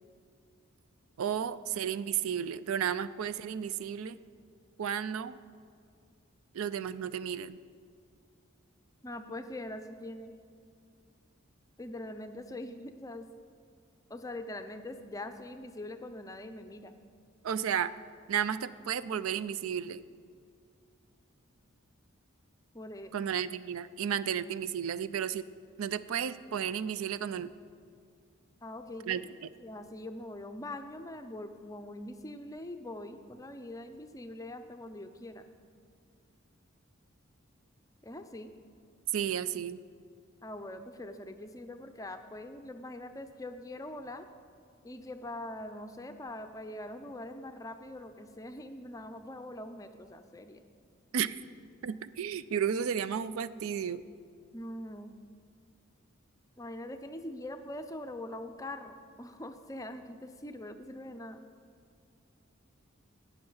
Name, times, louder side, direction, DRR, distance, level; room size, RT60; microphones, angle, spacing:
voice 1, 1.2-4.2 4.8-5.4 6.5-7.6 17.4-17.9 18.3-20.0 23.1-25.5 25.8-27.5 29.1-29.5 39.1-39.8 51.1-51.4 51.8-54.0, right 8 dB, 80° right, 15 dB, 0.4 m, -33 dB
voice 2, 9.0-10.3 11.8-13.3 14.1-16.9 22.7-23.1 28.6-29.2 29.6-35.4 38.0-38.5 40.4-44.3 44.8-50.6 54.5-55.2 56.6-61.4, left 1 dB, 15° left, 8 dB, 0.5 m, -43 dB
16.5 x 5.8 x 5.5 m, 2.3 s
head